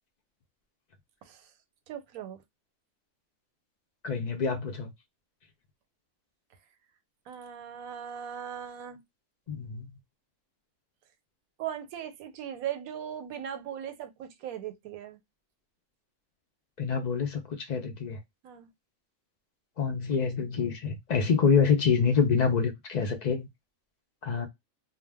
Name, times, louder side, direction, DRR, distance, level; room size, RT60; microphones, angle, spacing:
voice 1, 1.9-2.4 7.3-9.0 11.6-15.2 18.4-18.7, right 9 dB, 90° right, 1.0 m, -38 dB
voice 2, 4.0-4.9 9.5-9.9 16.8-18.2 19.8-23.5 24.2-24.5, left 6 dB, 60° left, 0.4 m, -26 dB
2.4 x 2.1 x 3.3 m
omnidirectional pair, 1.5 m